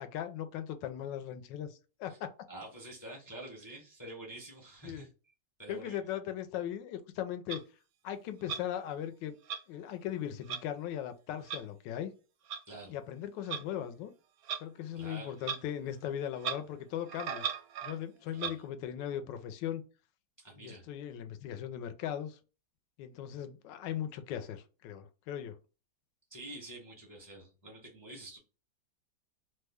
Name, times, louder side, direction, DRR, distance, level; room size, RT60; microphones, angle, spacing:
voice 1, 0.0-2.3 4.8-5.1 5.7-7.6 8.0-9.3 9.7-12.1 12.9-14.1 14.6-17.4 17.8-19.8 20.6-22.4 23.0-25.6, left 10 dB, 80° left, 1.2 m, -38 dB
voice 2, 2.5-5.1 5.6-6.0 12.7-12.9 14.9-15.3 18.3-18.6 20.4-20.8 26.3-28.4, right 1 dB, 25° left, 0.6 m, -47 dB
Clock, 7.5-7.6 8.5-8.6 9.5-9.6 10.5-10.6 11.5-11.6 12.5-12.6 13.5-13.6 14.4-14.6 15.4-15.6 15.9-16.0 16.4-16.6 17.1-18.0 18.4-18.5, right 7 dB, 70° right, 0.9 m, -36 dB
3.1 x 2.1 x 3.4 m
omnidirectional pair, 2.0 m